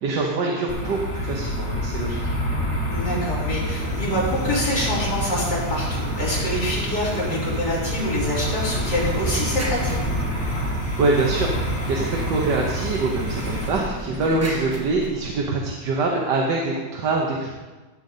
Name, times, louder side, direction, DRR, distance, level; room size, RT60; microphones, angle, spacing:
voice 1, 0.0-2.3 11.0-11.5 11.9-17.5, right 3 dB, 80° right, -1 dB, 1.8 m, -24 dB
sound 1, 0.7-13.7, left 1 dB, 60° left, 3.1 m, -27 dB
voice 2, 2.9-10.0, left 1 dB, 75° left, -8 dB, 4.5 m, -26 dB
sound 2, 3.8-13.9, right 7 dB, 55° right, 0.7 m, -35 dB
sound 3, 8.5-11.0 12.6-15.8, right 1 dB, 10° right, 1.0 m, -36 dB
16.0 x 7.4 x 4.0 m, 1.3 s
omnidirectional pair, 1.8 m